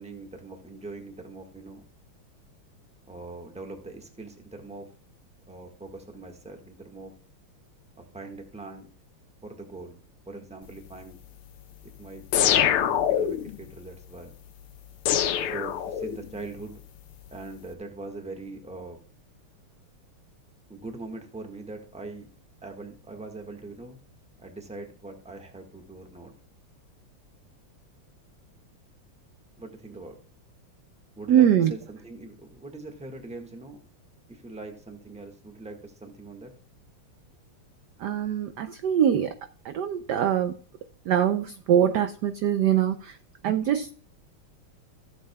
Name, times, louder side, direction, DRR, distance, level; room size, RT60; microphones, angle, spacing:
voice 1, 0.0-1.8 3.1-4.9 5.5-7.1 7.9-8.9 9.4-10.0 10.3-11.2 12.0-14.3 15.5-16.8 17.3-19.0 20.7-22.3 22.6-24.0 24.4-26.3 29.6-30.2 31.2-33.8 34.3-36.5, right 3 dB, 5° right, 1.1 m, -42 dB
sound 1, 12.3-13.6 15.1-16.4, left 10 dB, 85° left, 1.7 m, -24 dB
voice 2, 31.3-31.7 38.0-39.3 39.6-40.5 41.1-43.2 43.4-43.9, right 10 dB, 75° right, 1.0 m, -23 dB
15.0 x 7.7 x 2.3 m
omnidirectional pair, 2.4 m